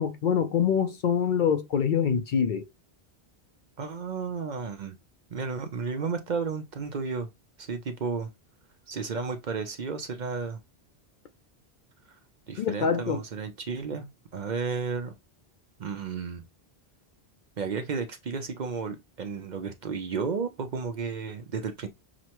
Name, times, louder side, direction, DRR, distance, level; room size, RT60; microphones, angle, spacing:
voice 1, 0.0-2.7 12.6-13.2, left 7 dB, 60° left, 0.6 m, -25 dB
voice 2, 3.8-5.0 5.3-7.3 7.6-8.3 8.9-10.6 12.5-15.1 15.8-16.4 17.6-21.9, right 5 dB, 50° right, 0.7 m, -33 dB
6.1 x 2.1 x 2.9 m
omnidirectional pair, 1.0 m